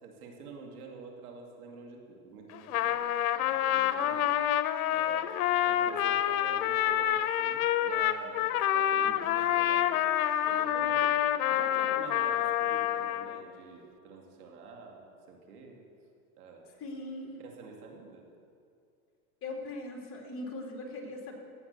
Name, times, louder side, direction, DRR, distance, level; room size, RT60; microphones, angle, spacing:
voice 1, 0.0-3.0 3.4-4.4 4.9-10.2 10.5-11.2 11.5-15.8 16.4-16.7 17.4-18.2, right 4 dB, 90° right, 1 dB, 2.7 m, -48 dB
Trumpet, 2.5-13.4, left 11 dB, 80° left, 0.9 m, -28 dB
voice 2, 9.0-9.3 16.8-17.4 19.4-21.3, left 2 dB, 30° left, 0 dB, 2.7 m, -40 dB
15.0 x 8.8 x 6.9 m, 2.4 s
supercardioid pair, 135°, 44 cm